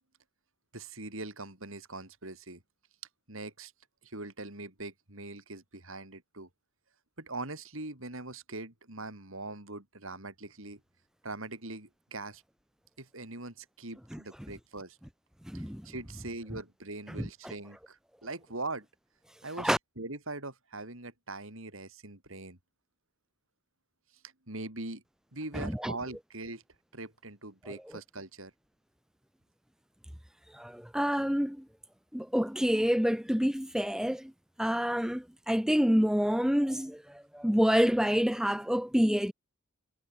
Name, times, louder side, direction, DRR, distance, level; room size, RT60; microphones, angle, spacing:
voice 1, 0.7-2.6 3.3-3.7 4.0-6.5 7.2-10.8 11.2-12.4 13.0-15.0 15.5-18.9 19.4-22.6 24.2-25.0 25.3-26.6 26.9-28.5, right 2 dB, 65° right, 4.8 m, -42 dB
voice 2, 15.4-15.9 17.2-17.5 19.6-19.8 25.5-25.9 27.6-27.8 30.5-31.6 32.1-34.3 34.6-39.3, equal, 5° right, 0.7 m, -28 dB
head